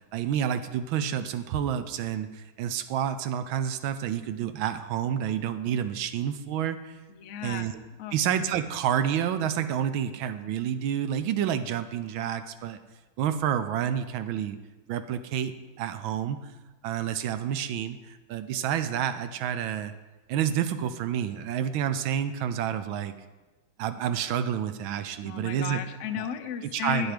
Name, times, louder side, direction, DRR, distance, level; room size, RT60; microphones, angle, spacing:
voice 1, 0.1-7.0 7.4-7.7 8.1-12.8 13.2-14.6 14.9-16.4 16.8-19.9 20.3-23.1 23.8-25.8 26.2-26.3 26.7-27.1, right 9 dB, 85° right, 11 dB, 1.4 m, -29 dB
voice 2, 7.1-7.7 8.0-8.2 25.2-27.1, left 9 dB, 75° left, 8 dB, 0.6 m, -34 dB
9.3 x 9.2 x 5.0 m, 1.1 s
omnidirectional pair, 2.2 m